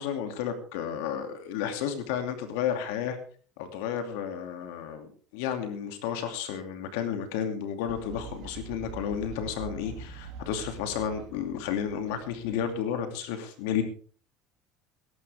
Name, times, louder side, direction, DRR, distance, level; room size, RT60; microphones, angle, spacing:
voice 1, 0.0-3.2 3.6-13.8, left 8 dB, 85° left, 6 dB, 2.6 m, -32 dB
Fowl, 7.9-13.2, right 5 dB, 65° right, 2.6 m, -44 dB
21.0 x 11.0 x 3.6 m, 0.42 s
cardioid pair, 145°, 0 cm